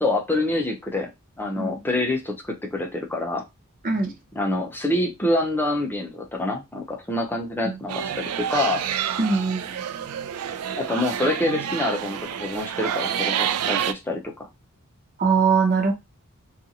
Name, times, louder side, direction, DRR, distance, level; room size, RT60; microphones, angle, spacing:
voice 1, 0.0-1.1 1.4-3.4 4.4-8.8 10.8-14.5, left 1 dB, 10° left, 1 dB, 0.6 m, -26 dB
voice 2, 3.8-4.2 7.6-7.8 9.2-9.7 15.2-15.9, right 5 dB, 40° right, 4 dB, 0.7 m, -21 dB
sound 1, 7.9-13.9, right 9 dB, 75° right, 0.3 m, -28 dB
2.7 x 2.4 x 2.7 m, 0.23 s
head